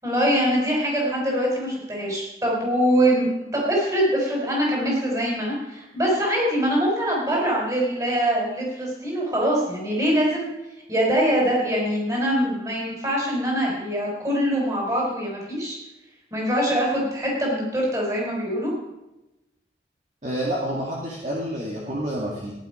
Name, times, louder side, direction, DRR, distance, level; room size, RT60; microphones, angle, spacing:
voice 1, 0.0-10.5 10.9-15.8 16.3-18.7, equal, 20° right, -3 dB, 4.9 m, -23 dB
voice 2, 20.2-22.5, equal, 40° right, -4 dB, 2.2 m, -28 dB
16.0 x 11.0 x 5.1 m, 0.97 s
head